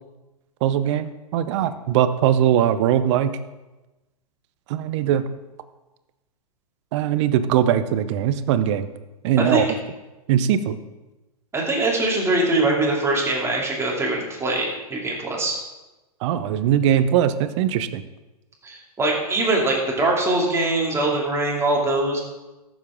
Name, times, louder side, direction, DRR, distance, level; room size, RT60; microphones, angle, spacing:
voice 1, 0.6-3.4 4.7-5.2 6.9-8.9 9.2-9.7 10.3-10.8 16.2-18.0, right 10 dB, 50° right, 12 dB, 0.7 m, -20 dB
voice 2, 11.5-15.6 18.6-22.2, right 2 dB, 15° right, -2 dB, 2.6 m, -22 dB
14.0 x 7.3 x 3.7 m, 1.1 s
hypercardioid pair, 110°, 20 cm